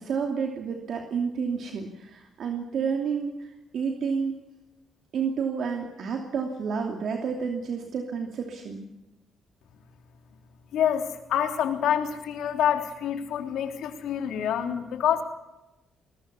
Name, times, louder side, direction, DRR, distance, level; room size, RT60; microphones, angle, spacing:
voice 1, 0.0-3.5 3.7-4.4 5.1-8.9, right 6 dB, 65° right, 3 dB, 2.8 m, -30 dB
voice 2, 10.7-15.2, left 9 dB, 80° left, 5 dB, 3.5 m, -27 dB
22.0 x 20.5 x 7.0 m, 0.95 s
cardioid pair, 90°, 0 cm